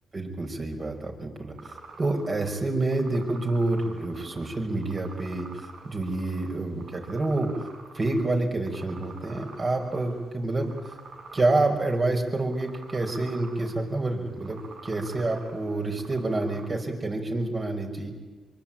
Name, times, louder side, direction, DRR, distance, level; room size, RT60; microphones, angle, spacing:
voice 1, 0.1-1.5 2.0-5.5 5.8-7.5 7.9-10.7 11.3-18.1, right 2 dB, 35° right, 3 dB, 5.7 m, -28 dB
sound 1, 1.6-16.7, right 3 dB, 75° right, 6.0 m, -48 dB
25.0 x 23.5 x 9.1 m, 1.3 s
cardioid pair, 85°, 0 cm